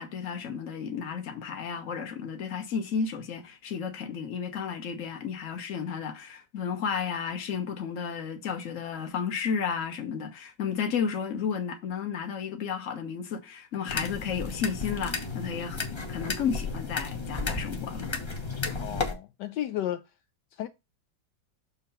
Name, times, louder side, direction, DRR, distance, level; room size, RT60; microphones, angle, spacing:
voice 1, 0.0-15.8 16.1-18.1, left 6 dB, 50° left, 1.4 m, -32 dB
sound 1, 13.9-19.1, left 4 dB, 25° left, 0.7 m, -33 dB
voice 2, 18.8-20.0 20.5-20.7, left 12 dB, 75° left, 1.2 m, -33 dB
6.9 x 3.2 x 5.5 m
omnidirectional pair, 1.9 m